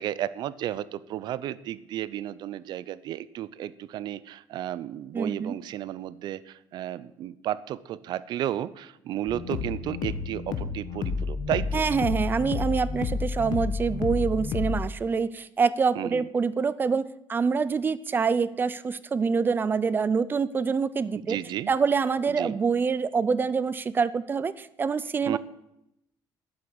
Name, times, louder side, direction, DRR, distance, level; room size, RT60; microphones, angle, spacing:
voice 1, 0.0-11.8 16.0-16.3 21.2-21.7 22.3-22.6 25.3-25.4, right 12 dB, 60° right, 18 dB, 0.6 m, -33 dB
voice 2, 5.1-5.6 11.7-21.4 21.7-25.4, right 5 dB, 25° right, 17 dB, 0.6 m, -26 dB
sound 1, 9.3-14.9, left 5 dB, 60° left, 1.5 m, -30 dB
13.0 x 8.2 x 8.8 m, 0.84 s
cardioid pair, 150°, 8 cm